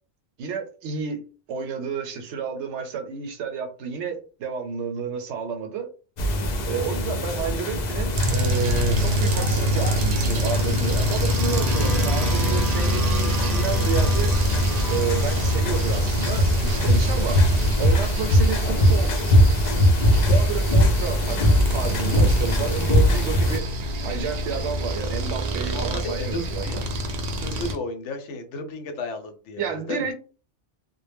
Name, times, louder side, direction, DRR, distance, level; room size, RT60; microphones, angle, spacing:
voice 1, 0.4-1.2 1.5-5.9 6.6-14.3 14.9-19.2 20.3-21.4 21.7-26.8 29.6-30.1, right 6 dB, 80° right, 0.9 m, -31 dB
sound 1, 6.2-23.6, equal, 60° left, 0.5 m, -22 dB
sound 2, 8.1-27.8, equal, 60° right, 0.4 m, -26 dB
sound 3, 10.8-16.7, right 1 dB, ahead, 0.7 m, -37 dB
voice 2, 25.7-26.8 27.4-30.1, left 2 dB, 80° left, 0.9 m, -33 dB
2.1 x 2.0 x 3.3 m
omnidirectional pair, 1.2 m